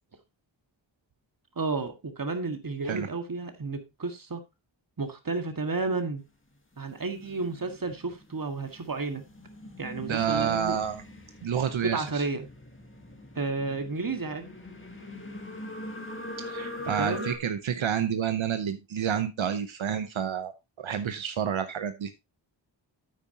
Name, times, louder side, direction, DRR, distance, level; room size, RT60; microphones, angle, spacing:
voice 1, 1.6-4.4 5.0-6.2 6.8-9.2 9.8-10.8 11.9-12.5 13.3-14.5 16.8-17.3, right 3 dB, 45° right, 6 dB, 1.9 m, -32 dB
sound 1, 6.9-17.4, left 2 dB, 25° left, 1.9 m, -42 dB
voice 2, 10.1-11.0 11.4-12.2 16.4-20.5 20.8-22.1, right 8 dB, 85° right, 9 dB, 0.9 m, -29 dB
9.5 x 8.6 x 2.9 m, 0.23 s
wide cardioid pair, 70°, 45 cm